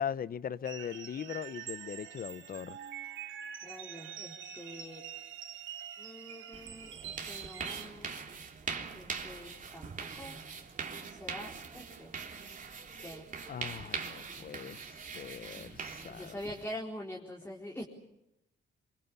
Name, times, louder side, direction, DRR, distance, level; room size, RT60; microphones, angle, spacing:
voice 1, 0.0-2.8 13.5-14.8 15.1-16.4, left 8 dB, 45° left, 0.9 m, -39 dB
sound 1, 0.6-7.9, right 9 dB, 75° right, 2.9 m, -45 dB
voice 2, 3.6-5.0 6.0-6.9 7.3-8.1 8.9-10.4 11.1-12.1 13.0-13.2 16.1-17.9, left 1 dB, 10° left, 4.3 m, -45 dB
sound 2, 6.5-16.7, right 5 dB, 40° right, 3.6 m, -42 dB
26.0 x 24.0 x 7.0 m
cardioid pair, 90°, 20 cm